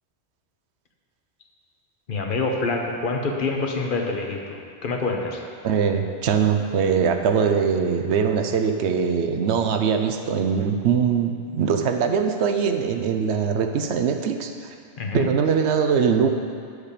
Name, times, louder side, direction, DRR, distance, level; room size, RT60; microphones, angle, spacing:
voice 1, 2.1-5.4 15.0-15.3, left 3 dB, 55° left, 1 dB, 1.1 m, -26 dB
voice 2, 5.6-14.7 15.1-16.3, right 6 dB, 85° right, 6 dB, 0.9 m, -22 dB
8.8 x 4.9 x 6.6 m, 2.3 s
omnidirectional pair, 1.1 m